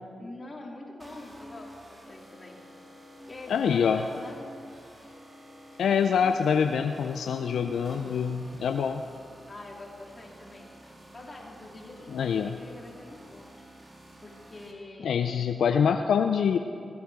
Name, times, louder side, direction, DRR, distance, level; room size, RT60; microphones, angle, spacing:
voice 1, 0.2-2.6 3.1-4.4 5.0-5.2 9.5-10.7 11.1-13.7 14.2-15.4, left 2 dB, 35° left, -1 dB, 2.7 m, -45 dB
sound 1, 1.0-14.7, equal, 35° right, 2.1 m, -50 dB
voice 2, 3.5-4.0 5.8-9.0 12.1-12.6 15.0-16.6, left 7 dB, 80° left, 7 dB, 0.4 m, -25 dB
16.5 x 8.2 x 4.8 m, 2.5 s
supercardioid pair, 40°, 0 cm